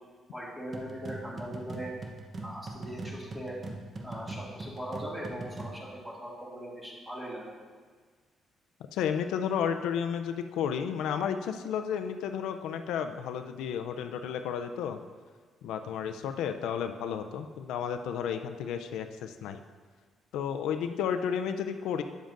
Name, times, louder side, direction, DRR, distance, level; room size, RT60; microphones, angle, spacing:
voice 1, 0.3-1.9 2.4-3.6 4.0-7.4, right 1 dB, 10° right, -4 dB, 2.1 m, -40 dB
sound 1, 0.7-5.8, right 2 dB, 40° right, 0.8 m, -41 dB
voice 2, 8.9-15.0 15.6-19.6 20.3-22.0, left 8 dB, 90° left, 7 dB, 0.4 m, -32 dB
8.9 x 7.3 x 2.5 m, 1.5 s
cardioid pair, 90°, 0 cm